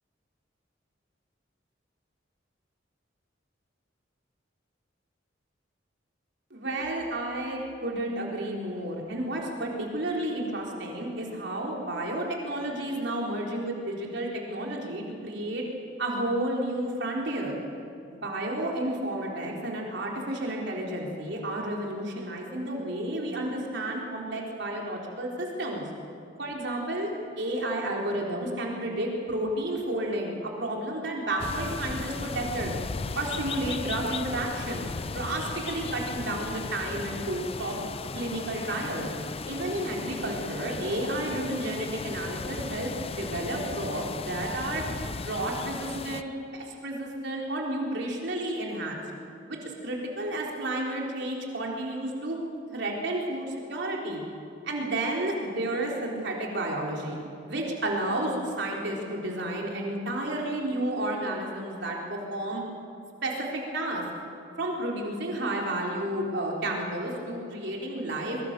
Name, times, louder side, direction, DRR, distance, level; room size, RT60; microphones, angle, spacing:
voice 1, 6.5-15.6 16.0-17.6 18.1-25.8 26.4-27.1 27.4-32.7 33.1-37.8 38.2-39.1 39.5-44.8 45.2-49.0 49.5-52.4 52.7-54.2 54.6-57.2 57.5-62.6 63.2-64.0 64.6-68.5, right 1 dB, 65° right, -1 dB, 3.9 m, -31 dB
sound 1, 31.4-46.2, left 4 dB, 30° left, 0.5 m, -36 dB
22.5 x 22.5 x 6.8 m, 2.7 s
head